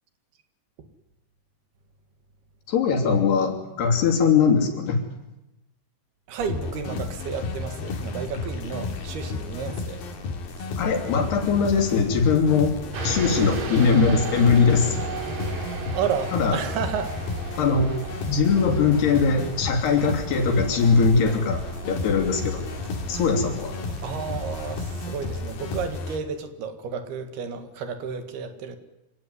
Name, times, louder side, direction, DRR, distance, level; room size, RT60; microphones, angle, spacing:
voice 1, 2.7-5.0 10.8-12.8 13.0-15.0 16.3-16.6 17.6-21.6 21.9-22.6 23.1-23.7, left 5 dB, 80° left, 4 dB, 5.0 m, -21 dB
voice 2, 6.3-10.0 15.9-17.2 24.0-28.8, right 6 dB, 75° right, 9 dB, 3.8 m, -32 dB
sound 1, 6.4-26.2, left 4 dB, 65° left, 4.1 m, -33 dB
sound 2, 12.9-25.9, right 4 dB, 50° right, 3.8 m, -36 dB
26.0 x 17.5 x 9.8 m, 0.94 s
omnidirectional pair, 4.6 m